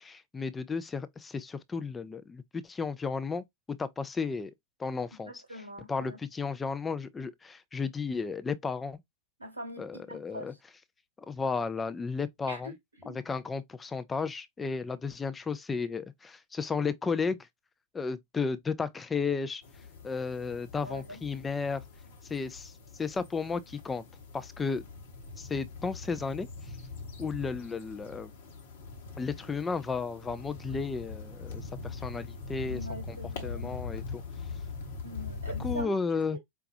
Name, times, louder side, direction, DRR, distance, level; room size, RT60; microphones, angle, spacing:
voice 1, 0.0-4.5 4.8-5.3 5.9-9.0 9.8-10.5 11.3-12.7 13.1-17.4 17.9-19.6 20.0-21.8 22.2-22.7 23.0-24.0 24.3-24.8 25.4-26.5 27.2-28.3 29.2-32.8 33.1-33.2 33.4-34.2 35.6-36.4, left 5 dB, 15° left, 0.4 m, -33 dB
voice 2, 5.3-6.2 9.4-10.6 12.5-13.2 20.8-21.2 32.6-33.8 35.0-35.9 36.3-36.4, equal, 80° right, 0.9 m, -43 dB
sound 1, 19.6-35.8, left 4 dB, 60° left, 1.0 m, -42 dB
4.8 x 2.2 x 2.5 m
figure-of-eight pair, 90°, 0 cm